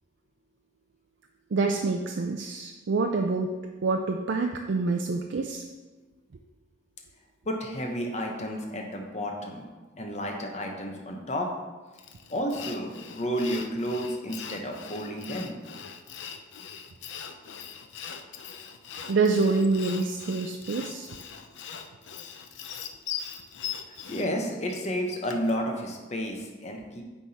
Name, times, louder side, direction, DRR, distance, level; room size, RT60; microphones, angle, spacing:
voice 1, 1.5-5.6 19.1-21.1, right 3 dB, 75° right, 3 dB, 0.4 m, -26 dB
voice 2, 7.4-9.6 10.0-11.5 12.3-15.6 24.1-27.0, equal, 35° left, 2 dB, 0.9 m, -31 dB
Sawing, 12.0-25.6, left 8 dB, 80° left, 0.5 m, -41 dB
9.6 x 3.6 x 4.2 m, 1.3 s
head